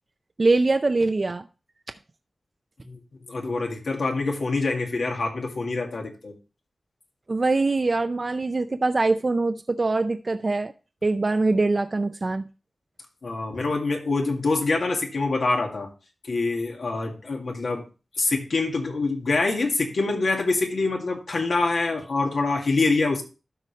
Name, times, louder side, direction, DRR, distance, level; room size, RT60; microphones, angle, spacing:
voice 1, 0.4-1.5 7.3-10.7 11.0-12.5, right 3 dB, 45° right, 0.5 m, -23 dB
voice 2, 3.3-6.3 13.2-15.9 16.3-17.8 18.2-23.2, left 3 dB, 80° left, 2.1 m, -25 dB
12.5 x 5.0 x 3.2 m
wide cardioid pair, 70°, 0 cm